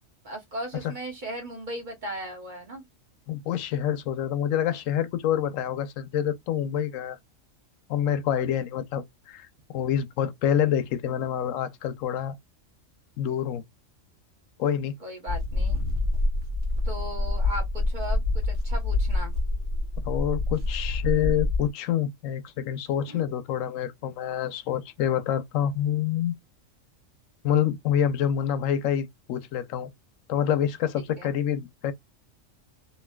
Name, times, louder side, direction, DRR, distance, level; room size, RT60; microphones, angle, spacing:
voice 1, 0.2-2.8 15.0-15.8 16.8-19.3 23.1-23.3 31.2-31.3, right 1 dB, 40° right, 1.2 m, -37 dB
voice 2, 3.3-7.2 7.9-12.3 13.2-13.6 14.6-14.9 20.1-26.3 27.4-29.9 30.3-31.9, left 9 dB, 80° left, 1.0 m, -27 dB
sound 1, 15.3-21.7, left 2 dB, 65° right, 1.4 m, -26 dB
3.0 x 2.6 x 2.2 m
omnidirectional pair, 1.3 m